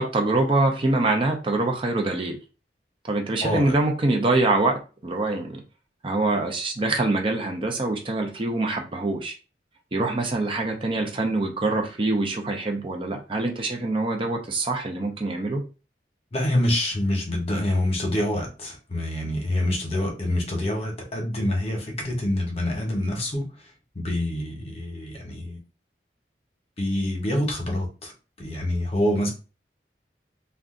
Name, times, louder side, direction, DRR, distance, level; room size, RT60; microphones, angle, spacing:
voice 1, 0.0-2.4 3.0-4.7 5.0-5.6 6.0-9.3 9.9-15.6, right 2 dB, 30° right, 2 dB, 0.5 m, -24 dB
voice 2, 3.4-3.8 16.3-23.5 23.9-25.6 26.8-28.1 28.4-29.3, left 1 dB, 35° left, 1 dB, 0.9 m, -26 dB
2.5 x 2.2 x 3.6 m, 0.32 s
head